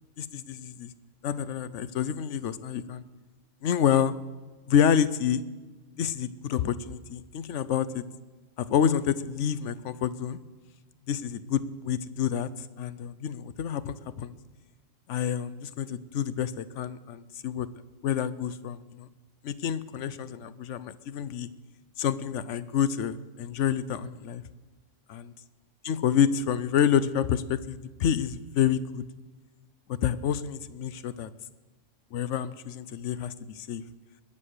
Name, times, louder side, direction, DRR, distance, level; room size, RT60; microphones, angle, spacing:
voice 1, 0.2-0.9 1.2-3.0 3.6-4.1 4.7-5.4 6.0-8.0 8.6-10.4 11.1-14.3 15.1-17.7 18.0-19.1 19.4-21.5 22.0-24.4 25.1-25.3 25.8-29.1 29.9-31.3 32.1-33.8, left 8 dB, 75° left, 15 dB, 1.0 m, -28 dB
20.5 x 7.6 x 6.6 m, 1.3 s
omnidirectional pair, 1.3 m